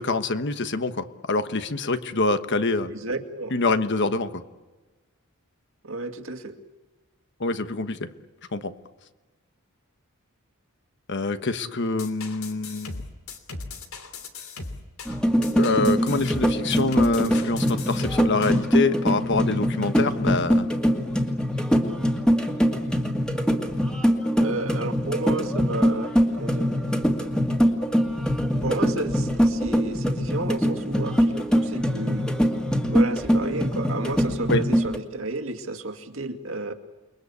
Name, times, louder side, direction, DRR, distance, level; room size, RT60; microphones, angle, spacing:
voice 1, 0.0-2.9 3.5-4.3 7.4-8.1 8.5-8.7 11.1-12.9 15.6-20.7 34.5-34.6, left 3 dB, 55° left, 10 dB, 1.3 m, -25 dB
voice 2, 2.9-3.6 5.8-6.6 24.4-26.7 28.6-32.3 32.9-36.7, right 2 dB, 70° right, 7 dB, 2.2 m, -32 dB
sound 1, 12.0-18.6, left 3 dB, 85° left, 3.0 m, -38 dB
sound 2, 15.1-35.0, equal, 5° left, 2.3 m, -23 dB
29.0 x 22.0 x 8.4 m, 1.2 s
head